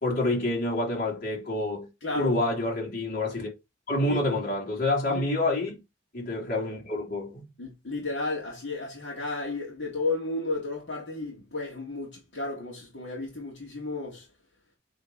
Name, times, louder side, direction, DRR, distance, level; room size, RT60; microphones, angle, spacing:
voice 1, 0.0-1.9 2.1-3.5 3.9-5.8 6.1-7.4, left 2 dB, 50° left, 3.2 m, -27 dB
voice 2, 2.0-2.4 4.1-4.2 5.1-5.2 7.6-14.3, left 3 dB, 65° left, 2.5 m, -33 dB
8.1 x 4.1 x 4.1 m
head